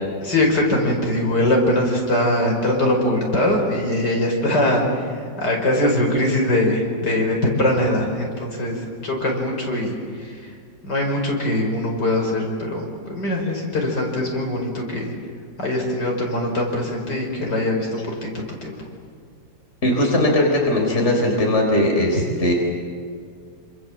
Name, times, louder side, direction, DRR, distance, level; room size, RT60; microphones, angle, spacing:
voice 1, 0.2-10.3 10.8-15.1 15.6-18.7, left 1 dB, 65° left, 0 dB, 5.9 m, -22 dB
voice 2, 19.8-22.5, left 1 dB, 35° left, 1 dB, 4.6 m, -19 dB
28.5 x 27.0 x 7.6 m, 2.2 s
omnidirectional pair, 2.0 m